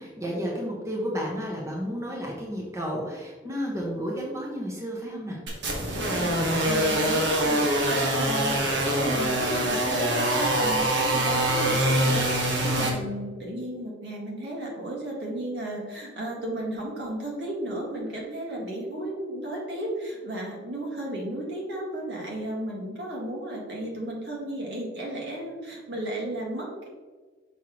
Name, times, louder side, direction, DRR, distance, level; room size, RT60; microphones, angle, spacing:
voice 1, 0.0-5.4, equal, 15° right, -3 dB, 0.9 m, -32 dB
sound 1, 5.5-12.9, right 1 dB, 90° right, 1.6 m, -24 dB
voice 2, 6.0-26.9, right 1 dB, 75° right, -3 dB, 1.9 m, -34 dB
6.1 x 5.5 x 3.0 m, 1.4 s
head